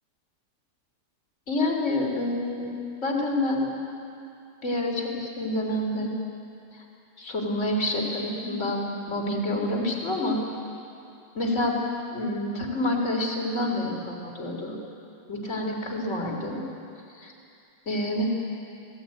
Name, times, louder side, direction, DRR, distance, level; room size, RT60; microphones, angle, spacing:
voice 1, 1.5-2.7 3.0-3.7 4.6-6.1 6.7-6.8 7.2-10.4 11.3-11.8 12.1-14.7 15.3-16.6 17.1-17.3 17.8-18.3, left 1 dB, 20° left, 1 dB, 3.3 m, -28 dB
28.0 x 19.0 x 9.3 m, 2.7 s
omnidirectional pair, 4.9 m